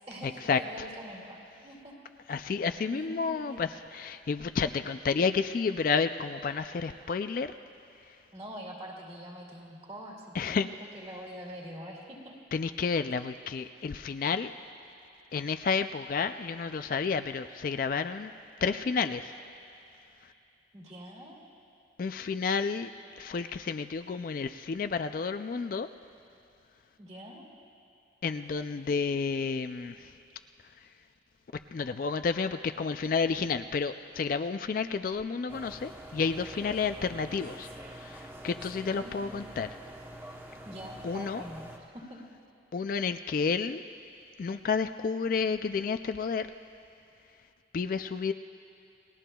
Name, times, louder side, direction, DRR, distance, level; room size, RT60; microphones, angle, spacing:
voice 1, 0.6-1.9 2.3-2.4 2.9-3.6 8.3-10.7 10.9-12.3 20.7-21.4 27.0-27.5 37.2-37.4 38.8-39.5 40.6-41.6 41.9-42.2, equal, 30° right, -3 dB, 2.5 m, -44 dB
voice 2, 2.3-7.5 10.3-10.7 12.5-14.5 15.3-18.3 18.6-19.3 22.0-22.9 23.2-25.9 28.2-30.1 31.7-37.7 37.9-39.7 41.0-41.4 42.7-43.8 44.4-46.5 47.7-48.3, left 5 dB, 50° left, 9 dB, 0.3 m, -30 dB
sound 1, 35.5-41.8, right 1 dB, 10° right, 0.9 m, -46 dB
29.5 x 19.0 x 2.3 m, 2.6 s
head